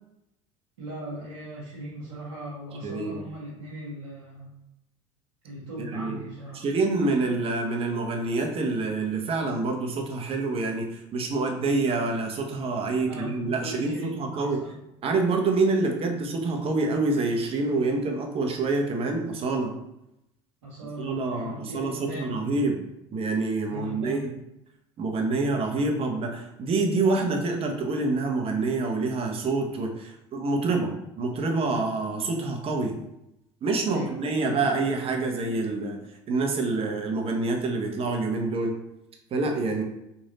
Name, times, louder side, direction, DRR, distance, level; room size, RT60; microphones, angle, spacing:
voice 1, 0.8-4.5 5.4-6.6 13.0-14.7 20.6-22.4 23.7-24.3 33.9-34.2, right 1 dB, 90° right, -9 dB, 1.1 m, -39 dB
voice 2, 2.8-3.2 5.9-6.2 6.5-14.6 15.0-19.7 21.0-22.8 23.1-24.3 25.0-33.0 33.6-38.7 39.3-39.8, right 3 dB, 40° right, 3 dB, 0.9 m, -27 dB
3.2 x 2.7 x 3.9 m, 0.85 s
hypercardioid pair, 75°, 15 cm